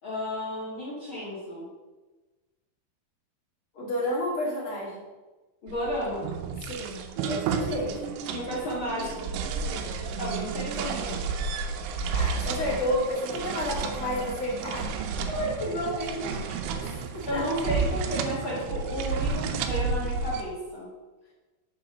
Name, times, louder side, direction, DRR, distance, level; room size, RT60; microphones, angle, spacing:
voice 1, 0.0-1.7 5.6-6.3 8.3-9.3 10.2-11.3 15.3-16.3 17.3-20.9, equal, 85° left, -7 dB, 1.1 m, -32 dB
voice 2, 3.7-5.0 6.7-8.1 12.1-14.9 16.8-17.5, left 1 dB, 45° left, -5 dB, 1.8 m, -31 dB
sound 1, 5.7-20.4, right 5 dB, 90° right, 3.1 m, -31 dB
6.9 x 5.9 x 5.2 m, 1.2 s
omnidirectional pair, 5.3 m